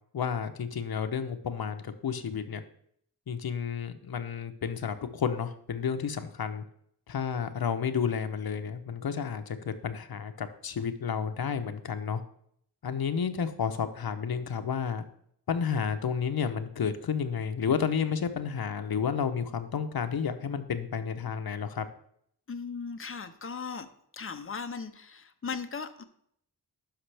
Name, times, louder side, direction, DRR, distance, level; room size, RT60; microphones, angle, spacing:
voice 1, 0.1-2.6 3.3-6.6 7.1-12.2 12.8-15.0 15.5-21.9, left 7 dB, 65° left, 8 dB, 0.8 m, -31 dB
voice 2, 22.5-23.9 24.1-26.0, left 5 dB, 35° left, 9 dB, 0.7 m, -37 dB
11.5 x 5.2 x 3.3 m, 0.67 s
wide cardioid pair, 100°, 39 cm